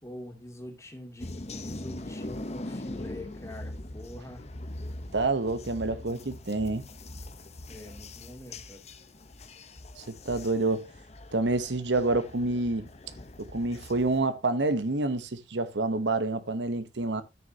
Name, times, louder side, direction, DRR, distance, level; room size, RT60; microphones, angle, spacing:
voice 1, 0.0-4.5 7.7-8.8, left 1 dB, 15° left, 2.5 m, -45 dB
sound 1, 1.2-14.2, left 1 dB, 40° left, 0.9 m, -42 dB
voice 2, 5.1-6.8 10.0-10.9 11.3-12.9 13.4-17.2, right 2 dB, 85° right, 1.1 m, -28 dB
13.5 x 6.4 x 2.8 m
head